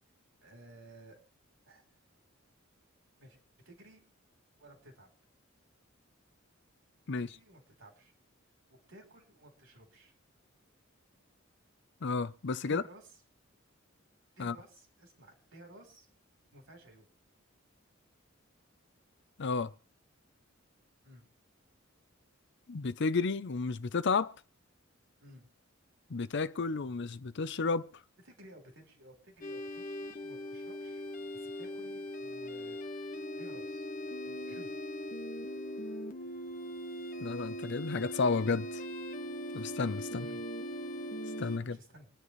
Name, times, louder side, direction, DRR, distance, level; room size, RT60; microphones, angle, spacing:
voice 1, 0.4-1.2 1.7-1.8 3.2-4.0 4.6-5.1 7.3-8.1 8.9-10.1 12.6-13.1 14.4-16.1 16.5-17.1 21.0-21.2 25.2-25.5 28.2-31.1 31.3-32.8 33.3-33.9 34.2-34.7 40.2-40.4 41.6-42.1, right 1 dB, 65° right, 3.8 m, -55 dB
voice 2, 12.0-12.8 14.4-14.6 19.4-19.7 22.7-24.3 26.1-27.9 37.2-38.8 39.5-40.3 41.4-41.8, left 4 dB, 60° left, 0.6 m, -32 dB
sound 1, 29.4-41.6, equal, 40° left, 1.3 m, -40 dB
25.5 x 9.8 x 3.2 m
head